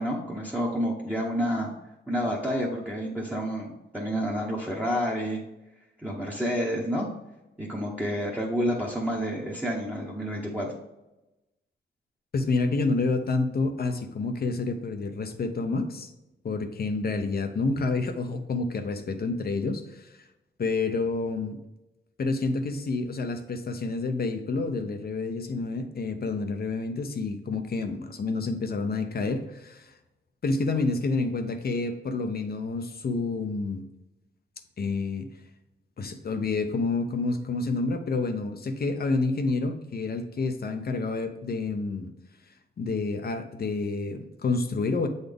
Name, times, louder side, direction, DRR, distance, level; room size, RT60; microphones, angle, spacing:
voice 1, 0.0-1.7 2.1-5.4 6.0-7.1 7.6-10.7, equal, 10° right, -5 dB, 1.1 m, -29 dB
voice 2, 12.3-16.1 16.4-20.1 20.6-21.6 22.2-29.9 30.4-33.9 34.8-35.3 36.0-42.1 42.8-45.1, left 3 dB, 55° left, 6 dB, 0.7 m, -29 dB
7.9 x 4.0 x 3.5 m, 0.96 s
wide cardioid pair, 120°, 19 cm